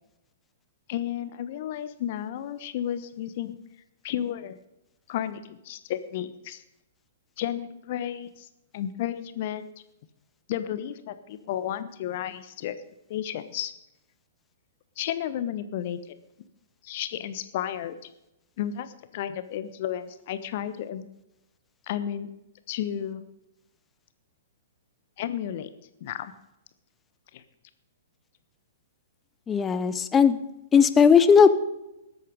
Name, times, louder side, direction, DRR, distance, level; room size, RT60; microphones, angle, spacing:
voice 1, 0.9-3.6 4.0-4.6 5.1-6.6 7.4-8.5 8.7-9.7 10.5-12.8 13.1-13.7 15.0-16.0 16.8-18.0 18.6-21.1 21.9-22.3 22.7-23.3 25.2-25.7 26.0-26.3 27.3-27.4, left 10 dB, 45° left, 12 dB, 1.1 m, -32 dB
voice 2, 29.5-30.4 30.7-31.6, left 6 dB, 15° left, 13 dB, 0.9 m, -17 dB
19.5 x 8.4 x 5.4 m, 0.91 s
figure-of-eight pair, 110°, 0 cm